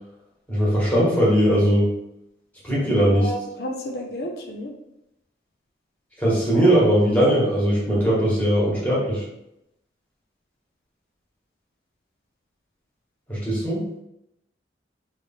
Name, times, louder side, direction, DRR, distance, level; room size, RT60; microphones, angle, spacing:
voice 1, 0.5-1.9 2.6-3.3 6.2-9.2 13.3-13.8, equal, 10° left, -7 dB, 1.4 m, -19 dB
voice 2, 2.8-4.7, equal, 60° left, 0 dB, 0.6 m, -32 dB
3.2 x 3.2 x 4.2 m, 0.84 s
head